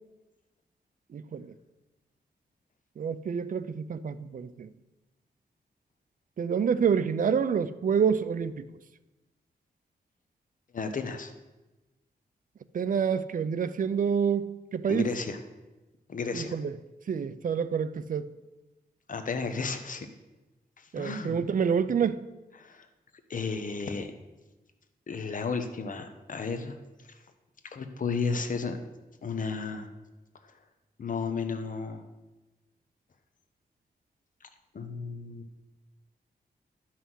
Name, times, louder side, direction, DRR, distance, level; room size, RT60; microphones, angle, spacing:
voice 1, 1.1-1.5 3.0-4.7 6.4-8.7 12.7-15.1 16.3-16.8 17.1-18.3 20.9-22.2, right 7 dB, 55° right, 0.5 m, -28 dB
voice 2, 10.7-11.3 14.9-15.4 16.1-16.6 19.1-20.1 20.8-21.4 22.6-22.9 23.3-24.1 25.1-26.8 27.7-28.8 29.2-29.9 31.0-32.0 34.7-35.5, left 4 dB, 50° left, 0.9 m, -33 dB
11.0 x 5.8 x 6.2 m
wide cardioid pair, 145°, 17 cm